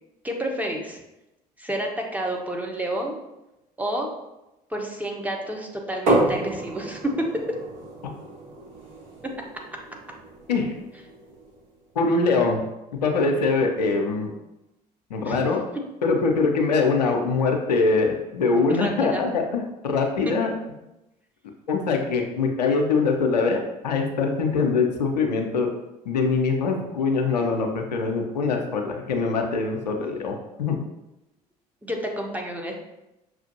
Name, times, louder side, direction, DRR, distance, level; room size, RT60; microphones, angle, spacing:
voice 1, 0.2-1.0 1.6-3.2 3.8-4.1 4.7-7.4 9.2-9.3 15.2-15.5 18.7-19.2 31.8-32.7, right 1 dB, 5° right, 0 dB, 0.7 m, -29 dB
sound 1, 6.1-11.7, right 2 dB, 60° right, 1.2 m, -29 dB
voice 2, 12.0-12.6 12.9-14.3 15.1-15.6 16.0-20.5 21.7-25.7 26.1-30.8, left 4 dB, 75° left, 2 dB, 0.5 m, -23 dB
5.9 x 2.5 x 2.7 m, 0.93 s
figure-of-eight pair, 60°, 21 cm